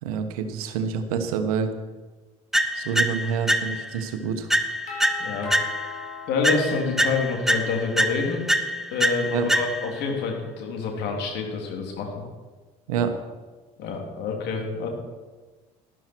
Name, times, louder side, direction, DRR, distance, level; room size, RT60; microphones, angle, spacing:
voice 1, 0.0-1.7 2.7-4.5 9.3-9.5 12.9-13.1, right 6 dB, 80° right, 7 dB, 1.3 m, -27 dB
sound 1, 2.5-4.0 4.5-6.0 6.4-10.0, equal, ahead, 0.8 m, -25 dB
Doorbell, 4.9-7.7, left 5 dB, 50° left, 4.8 m, -38 dB
voice 2, 5.2-5.5 6.3-8.4 8.9-12.2 13.8-14.9, left 4 dB, 65° left, 1 dB, 3.3 m, -27 dB
12.5 x 12.5 x 4.6 m, 1.3 s
hypercardioid pair, 65°, 18 cm